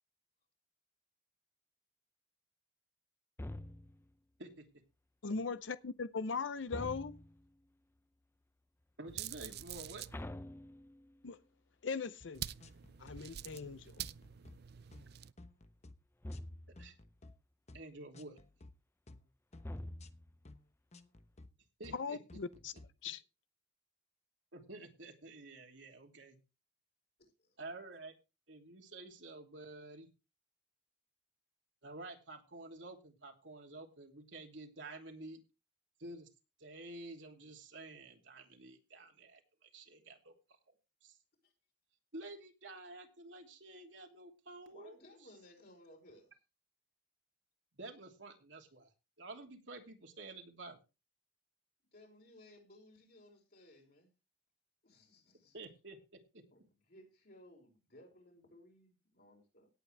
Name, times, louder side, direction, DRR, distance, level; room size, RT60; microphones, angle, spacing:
sound 1, 3.4-4.1 6.7-7.5 10.1-11.3 16.2-16.9 19.6-20.4, left 1 dB, 15° left, 0.5 m, -46 dB
voice 1, 5.2-7.2 11.2-11.4 11.8-12.4 13.0-14.0 21.9-22.7 23.0-23.2, left 4 dB, 90° left, 0.7 m, -39 dB
voice 2, 9.0-10.0 16.8-16.9 17.7-18.4 21.8-22.2 24.5-26.4 27.6-28.1 28.5-30.1 31.8-35.4 36.0-36.3 36.6-40.3 40.7-40.8 41.0-41.2 42.1-45.0 47.8-48.9 49.2-50.8 55.5-56.4, right 2 dB, 80° right, 3.0 m, -50 dB
sound 2, 9.1-10.2 12.3-15.3, right 10 dB, 60° right, 0.5 m, -46 dB
sound 3, 12.2-12.3 12.6-13.2 13.5-13.7 14.0-14.6 14.9-15.1 15.4-16.0 16.3-16.5 16.8-17.3 17.7-17.9 18.1-18.7 19.1-19.3 19.5-20.1 20.5-20.6 20.9-21.5 21.8-22.0 22.3-22.9, left 2 dB, 40° left, 1.0 m, -56 dB
voice 3, 27.2-27.6 41.4-41.5 44.7-46.3 51.9-54.1 54.8-55.6 56.5-59.7, left 1 dB, 60° left, 5.1 m, -60 dB
18.0 x 8.4 x 3.4 m
head